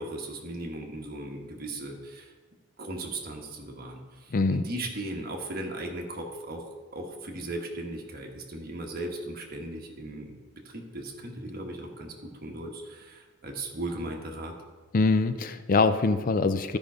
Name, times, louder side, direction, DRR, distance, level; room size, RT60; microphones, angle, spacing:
voice 1, 0.0-2.3 2.8-10.3 10.6-14.5, right 1 dB, 50° right, 1 dB, 1.3 m, -37 dB
voice 2, 4.3-4.6 14.9-16.8, left 3 dB, 45° left, 11 dB, 0.4 m, -24 dB
12.5 x 5.3 x 4.9 m, 1.4 s
head